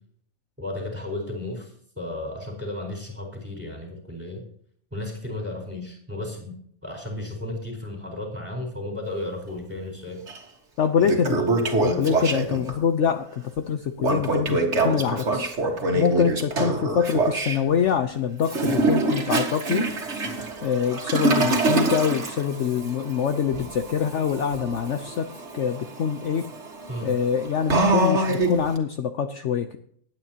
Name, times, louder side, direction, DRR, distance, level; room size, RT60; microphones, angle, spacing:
voice 1, 0.6-1.7 2.0-4.4 4.9-6.5 6.8-10.2 26.9-27.1, left 2 dB, 10° right, 2 dB, 4.3 m, -33 dB
Toilet flush, 10.3-10.4 10.8-12.7 14.0-17.6 18.4-28.8, right 2 dB, 50° right, 2.0 m, -25 dB
voice 2, 10.8-11.4 11.8-13.3 13.6-15.5 15.9-19.9 20.6-26.4 27.0-29.8, left 7 dB, 60° left, 8 dB, 1.0 m, -25 dB
20.0 x 9.1 x 2.9 m, 0.63 s
omnidirectional pair, 1.5 m